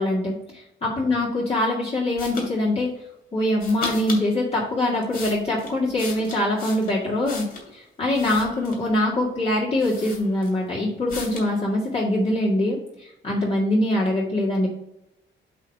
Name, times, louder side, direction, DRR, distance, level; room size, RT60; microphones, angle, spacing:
voice 1, 0.0-2.9 3.3-7.4 7.7-14.7, left 1 dB, 30° left, -6 dB, 2.0 m, -23 dB
sound 1, 2.2-2.5 3.6-4.3 4.8-7.7 8.1-8.9 9.5-9.6 9.8-10.7 11.1-11.5, left 3 dB, 50° left, 2.7 m, -36 dB
8.2 x 3.0 x 6.3 m, 0.86 s
cardioid pair, 115°, 20 cm